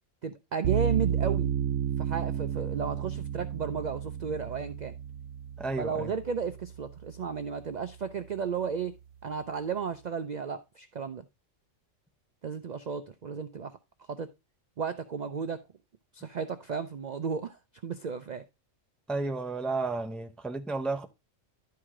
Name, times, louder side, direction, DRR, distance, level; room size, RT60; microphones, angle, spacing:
voice 1, 0.2-1.5 2.0-4.9 5.8-8.9 9.2-11.2 12.4-13.8 14.1-14.3 14.8-15.6 16.1-17.6 17.8-18.4, right 6 dB, 55° right, 0.5 m, -33 dB
sound 1, 0.6-7.7, right 9 dB, 80° right, 1.0 m, -32 dB
voice 2, 5.6-6.1 19.1-21.1, right 3 dB, ahead, 0.5 m, -32 dB
11.5 x 4.8 x 3.6 m
omnidirectional pair, 1.3 m